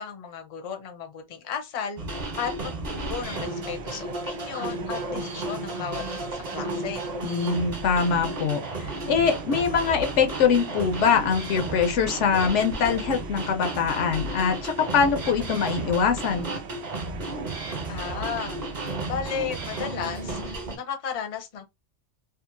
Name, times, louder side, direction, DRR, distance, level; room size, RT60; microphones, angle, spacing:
voice 1, 0.0-2.0 2.4-7.0 17.9-21.6, left 7 dB, 40° left, 0.6 m, -34 dB
sound 1, 2.0-20.8, right 2 dB, 40° right, 1.0 m, -33 dB
sound 2, 2.7-20.4, right 8 dB, 70° right, 0.8 m, -42 dB
voice 2, 7.2-16.5, left 6 dB, 80° left, 1.0 m, -23 dB
2.7 x 2.4 x 2.5 m
omnidirectional pair, 1.2 m